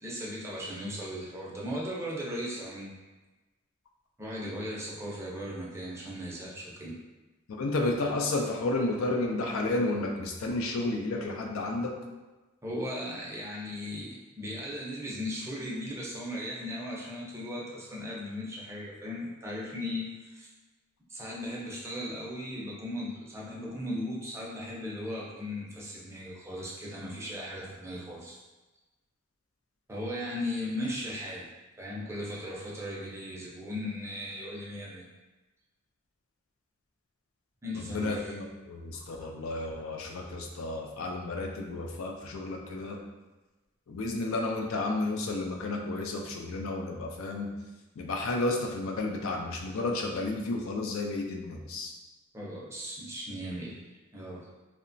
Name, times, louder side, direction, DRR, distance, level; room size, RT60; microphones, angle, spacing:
voice 1, 0.0-2.9 4.2-7.0 12.6-20.5 21.1-28.4 29.9-31.5 31.8-35.1 37.6-38.4 52.3-53.8 54.1-54.5, left 1 dB, 15° right, -5 dB, 0.4 m, -37 dB
voice 2, 7.6-11.9 37.8-43.0 43.9-47.5 48.0-51.9, left 2 dB, 85° left, 1 dB, 0.4 m, -32 dB
2.8 x 2.1 x 2.5 m, 1.2 s
head